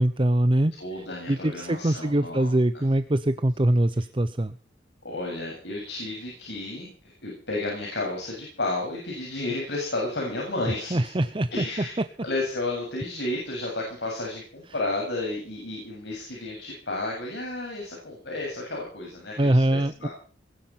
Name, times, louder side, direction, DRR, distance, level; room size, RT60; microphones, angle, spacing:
voice 1, 0.0-0.7 1.3-4.6 10.9-11.6 19.4-20.1, right 1 dB, 30° right, 12 dB, 0.8 m, -23 dB
voice 2, 0.8-2.5 5.0-11.1 11.5-20.1, left 2 dB, 70° left, -1 dB, 7.6 m, -32 dB
21.5 x 11.5 x 5.9 m, 0.42 s
head